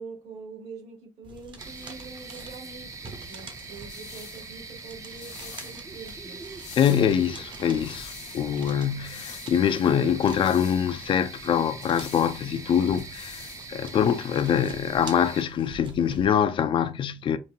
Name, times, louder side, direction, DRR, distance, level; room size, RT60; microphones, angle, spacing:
voice 1, 0.0-6.4, right 4 dB, 65° right, 2.6 m, -44 dB
sound 1, 1.2-16.3, right 3 dB, 40° right, 1.0 m, -47 dB
sound 2, 1.6-15.4, right 4 dB, 25° right, 0.6 m, -42 dB
sound 3, 3.5-14.4, left 9 dB, 90° left, 0.8 m, -48 dB
voice 2, 6.8-17.4, left 8 dB, 45° left, 0.4 m, -24 dB
5.2 x 2.6 x 2.8 m
cardioid pair, 135°, 12 cm